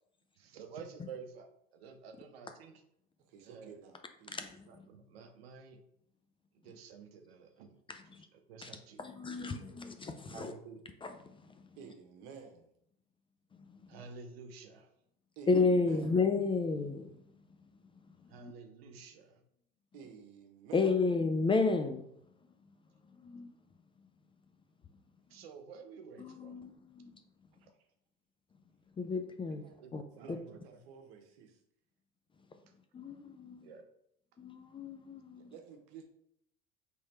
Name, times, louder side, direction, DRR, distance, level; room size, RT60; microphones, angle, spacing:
voice 1, 0.4-1.5 1.7-2.8 3.4-3.7 4.7-5.8 6.6-7.8 8.2-9.0 9.4-9.8 10.3-10.8 13.9-14.9 18.3-19.4 25.3-26.6 27.6-27.7 29.8-30.8 33.6-33.8, right 5 dB, 85° right, 5 dB, 0.6 m, -51 dB
voice 2, 3.3-4.4 11.7-12.7 15.4-16.2 19.9-21.0 29.6-29.8 30.2-31.6 35.3-36.0, right 6 dB, 65° right, 4 dB, 1.0 m, -52 dB
voice 3, 4.3-4.7 7.9-8.3 8.6-8.7 9.0-10.5 11.0-11.4 15.5-17.1 18.4-18.5 20.7-22.0 23.2-23.6 26.2-27.2 29.0-29.6 29.9-30.0 32.9-33.7 34.4-35.5, left 4 dB, 20° left, 7 dB, 0.4 m, -32 dB
3.4 x 3.2 x 4.2 m, 0.75 s
hypercardioid pair, 85°, 30 cm